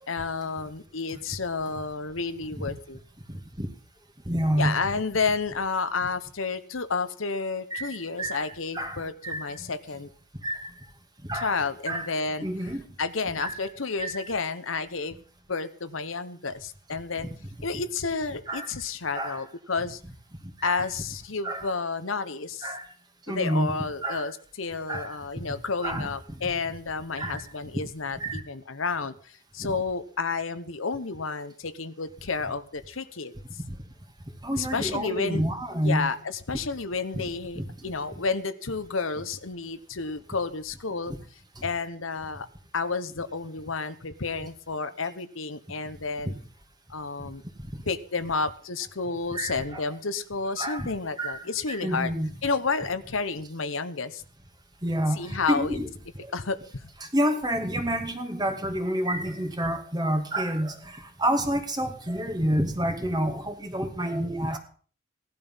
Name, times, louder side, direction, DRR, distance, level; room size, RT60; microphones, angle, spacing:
voice 1, 0.1-3.0 4.6-10.1 11.3-15.2 15.5-17.3 17.6-20.0 20.6-22.7 23.3-33.3 34.6-35.4 35.8-41.1 41.6-42.5 42.7-46.3 46.9-47.4 47.9-52.1 52.4-54.2 55.1-55.8 56.3-56.9, left 4 dB, 80° left, 12 dB, 1.1 m, -31 dB
voice 2, 3.3-3.7 4.3-4.8 7.7-8.4 8.7-9.5 10.4-10.7 11.3-11.6 11.9-12.1 12.4-12.8 13.4-13.5 14.0-14.1 18.5-18.7 19.1-19.4 20.6-20.8 21.4-21.7 22.6-22.8 23.3-23.8 24.0-24.2 24.9-25.1 25.8-26.1 27.2-27.4 28.2-28.4 29.6-29.7 34.4-36.1 37.6-37.7 46.3-46.4 49.3-49.6 50.6-50.9 51.2-51.4 51.7-52.4 54.8-55.9 57.1-64.6, right 1 dB, 20° right, 5 dB, 2.2 m, -28 dB
17.5 x 12.0 x 5.6 m, 0.43 s
head